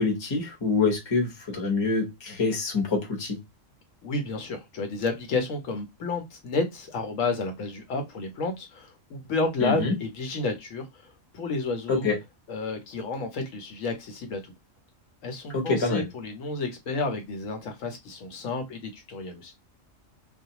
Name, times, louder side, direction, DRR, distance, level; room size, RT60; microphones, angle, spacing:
voice 1, 0.0-3.4 9.6-9.9 11.9-12.2 15.5-16.1, left 4 dB, 25° left, 0.8 m, -26 dB
voice 2, 4.0-12.1 12.5-14.5 15.2-19.5, left 3 dB, 75° left, 1.1 m, -31 dB
2.4 x 2.2 x 2.8 m
omnidirectional pair, 1.4 m